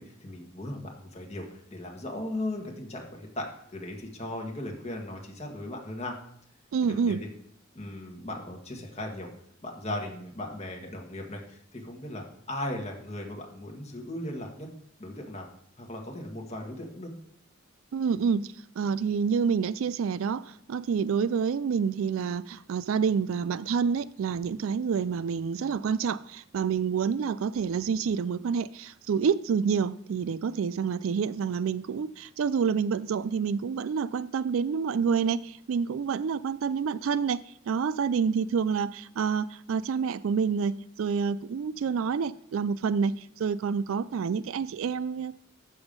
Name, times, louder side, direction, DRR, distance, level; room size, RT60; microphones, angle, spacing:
voice 1, 0.0-6.1 6.8-7.3 7.7-9.3 9.6-14.7 15.0-15.5 15.8-17.1, left 1 dB, 30° left, 1 dB, 1.7 m, -37 dB
voice 2, 6.7-7.2 17.9-45.3, right 6 dB, 80° right, 18 dB, 0.4 m, -28 dB
7.0 x 7.0 x 5.3 m, 0.68 s
head